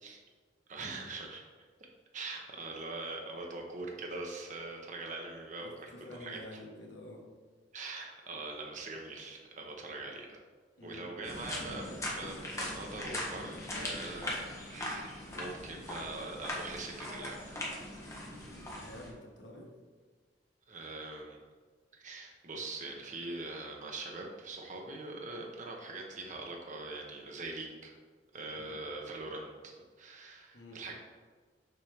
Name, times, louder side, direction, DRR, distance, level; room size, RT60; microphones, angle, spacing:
voice 1, 0.7-1.4 2.1-6.4 7.7-10.4 10.8-17.6 20.7-21.4 21.9-27.9 28.3-30.9, right 2 dB, 45° right, 1 dB, 0.8 m, -42 dB
voice 2, 5.6-7.2 10.8-11.1 18.7-19.7 28.5-28.8 30.5-30.8, left 1 dB, 80° left, -1 dB, 1.4 m, -49 dB
sound 1, 11.2-19.1, left 1 dB, 15° left, 1.3 m, -40 dB
6.8 x 4.5 x 3.4 m, 1.5 s
head